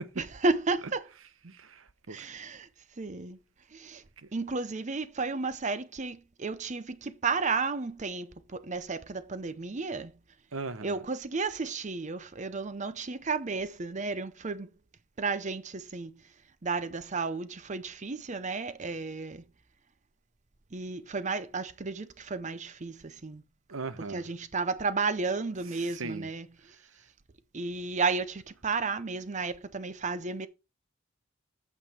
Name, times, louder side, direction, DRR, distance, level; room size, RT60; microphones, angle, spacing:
voice 1, 0.2-1.1 2.1-2.7 3.0-3.4 3.7-4.0 4.3-10.1 10.8-14.7 15.2-16.1 16.6-19.4 20.7-23.4 24.1-26.8 27.5-30.5, right 4 dB, 35° right, 0.7 m, -33 dB
voice 2, 1.4-2.3 4.2-4.3 10.5-11.0 23.7-24.2 25.8-26.3, right 3 dB, 80° right, 0.9 m, -39 dB
8.5 x 6.8 x 4.3 m
head